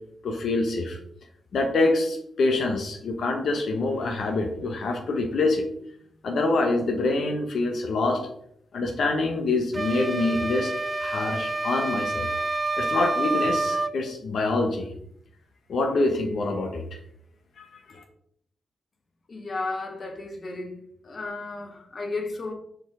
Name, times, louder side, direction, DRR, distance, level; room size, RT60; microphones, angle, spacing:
voice 1, 0.2-1.0 1.5-5.6 6.2-8.2 8.7-10.7 11.0-12.3 12.8-14.9 15.7-17.0 17.6-18.0, left 2 dB, 70° left, 3 dB, 0.9 m, -25 dB
sound 1, 9.7-14.0, right 2 dB, 30° right, 0.3 m, -28 dB
voice 2, 19.3-20.7 21.0-22.5, left 3 dB, 50° left, 2 dB, 1.6 m, -33 dB
5.0 x 4.0 x 4.7 m, 0.70 s
supercardioid pair, 50°, 0 cm